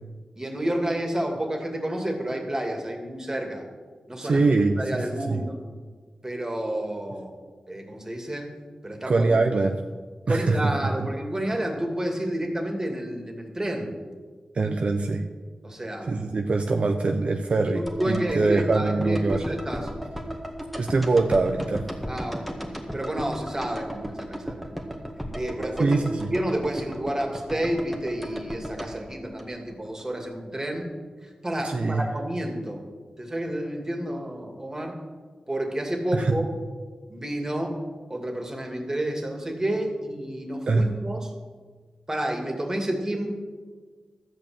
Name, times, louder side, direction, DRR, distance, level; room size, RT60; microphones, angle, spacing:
voice 1, 0.4-3.6 4.1-4.4 4.8-5.6 6.2-7.3 7.7-8.5 8.8-9.3 10.3-13.9 15.6-16.1 17.7-19.9 22.1-22.5 22.9-24.6 25.3-26.0 26.3-30.9 31.4-32.8 33.2-35.0 35.5-36.5 37.1-37.8 38.1-41.3 42.1-43.3, right 1 dB, 25° right, 2 dB, 2.5 m, -30 dB
voice 2, 4.2-5.4 9.1-9.8 10.3-11.1 14.5-15.3 16.0-19.5 20.8-21.9 25.8-26.3 31.6-32.0 36.1-36.4 40.7-41.0, right 3 dB, 60° right, 4 dB, 0.8 m, -23 dB
sound 1, 17.9-30.1 30.3-30.4, equal, ahead, 1.8 m, -36 dB
13.0 x 5.5 x 8.8 m, 1.5 s
cardioid pair, 60°, 2 cm